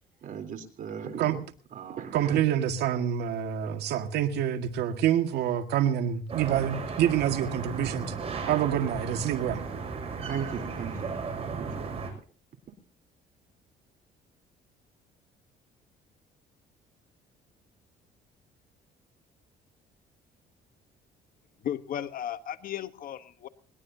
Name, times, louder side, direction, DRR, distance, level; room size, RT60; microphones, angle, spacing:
voice 1, 0.2-1.4 1.8-2.4 10.2-11.9, right 7 dB, 55° right, 6 dB, 3.6 m, -37 dB
voice 2, 2.1-8.1 8.4-9.6, right 10 dB, 75° right, 7 dB, 1.9 m, -27 dB
sound 1, 6.3-12.1, right 5 dB, 35° right, 6.4 m, -35 dB
voice 3, 21.6-23.5, left 10 dB, 55° left, 11 dB, 1.2 m, -35 dB
21.0 x 20.5 x 2.8 m, 0.40 s
cardioid pair, 110°, 17 cm